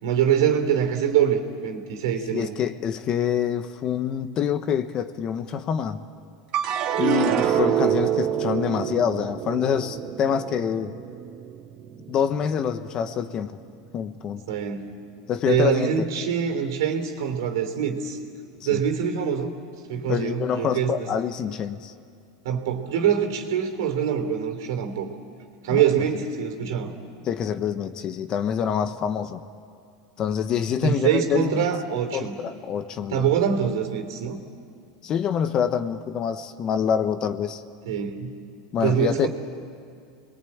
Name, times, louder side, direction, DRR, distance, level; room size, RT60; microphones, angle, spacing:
voice 1, 0.0-2.5 14.5-15.0 15.5-18.2 18.6-19.5 19.9-21.1 22.4-25.1 25.6-26.9 30.8-32.3 33.1-34.4 37.8-38.3 38.8-39.3, right 8 dB, 80° right, 6 dB, 3.2 m, -24 dB
voice 2, 2.3-6.0 7.0-10.9 12.1-13.6 13.9-14.4 15.3-16.1 18.7-18.8 20.0-21.9 25.7-25.8 27.2-29.4 30.2-31.7 32.1-33.3 35.0-37.6 38.7-39.3, left 8 dB, 35° left, 10 dB, 1.2 m, -26 dB
sound 1, 6.5-13.0 13.4-14.1, right 10 dB, 45° right, 1.9 m, -27 dB
28.5 x 21.0 x 8.8 m, 2.4 s
supercardioid pair, 130°, 2 cm